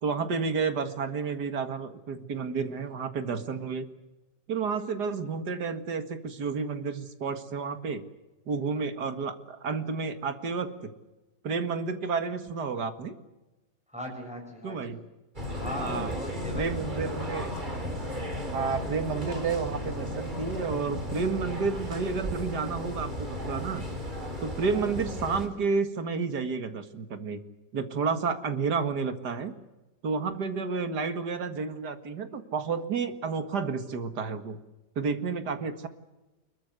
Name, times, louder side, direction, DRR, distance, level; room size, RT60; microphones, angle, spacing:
voice 1, 0.0-3.9 4.5-8.0 8.5-10.9 11.4-13.1 14.6-15.0 15.7-16.2 16.5-17.5 18.5-23.8 24.4-27.4 27.7-29.5 30.0-34.6 35.0-35.9, right 5 dB, 70° right, 9 dB, 2.4 m, -31 dB
voice 2, 13.9-14.9 15.6-17.1, left 1 dB, 5° right, 0 dB, 6.7 m, -39 dB
sound 1, 15.3-25.5, left 1 dB, 25° right, 4.0 m, -35 dB
25.0 x 22.0 x 8.0 m, 1.1 s
omnidirectional pair, 1.8 m